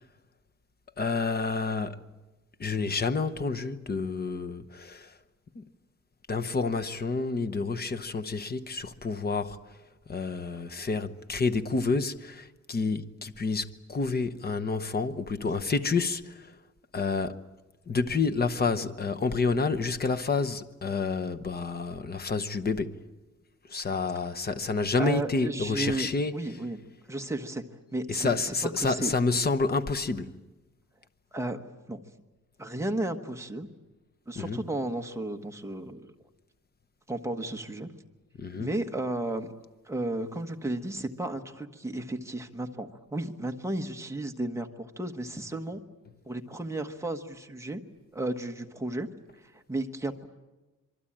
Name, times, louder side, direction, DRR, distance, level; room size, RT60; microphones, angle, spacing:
voice 1, 1.0-2.0 2.6-5.1 5.5-5.6 6.3-9.6 10.1-16.5 16.9-17.4 17.9-23.0 23.7-26.4 28.1-30.4 34.3-34.6 38.4-38.7, left 4 dB, 30° left, 0.9 m, -29 dB
voice 2, 25.0-26.8 27.1-27.6 27.9-29.1 31.3-31.6 31.9-32.0 32.6-33.7 34.3-36.1 37.1-37.9 38.6-39.5 39.8-45.8 46.3-47.8 48.1-49.1 49.4-50.3, right 1 dB, 10° right, 1.3 m, -33 dB
26.0 x 23.5 x 8.8 m
wide cardioid pair, 175°, 30 cm